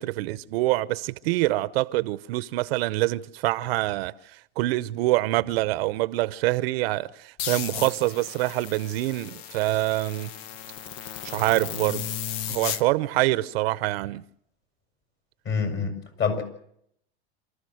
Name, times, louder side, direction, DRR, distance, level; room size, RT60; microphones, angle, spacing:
voice 1, 0.0-4.1 4.6-10.3 11.2-12.2 12.5-14.2, right 18 dB, 65° right, 0.8 m, -25 dB
sound 1, 7.4-12.8, left 10 dB, 55° left, 1.2 m, -35 dB
voice 2, 15.5-16.4, left 5 dB, 40° left, 6.9 m, -26 dB
28.0 x 14.5 x 7.8 m
supercardioid pair, 115°, 32 cm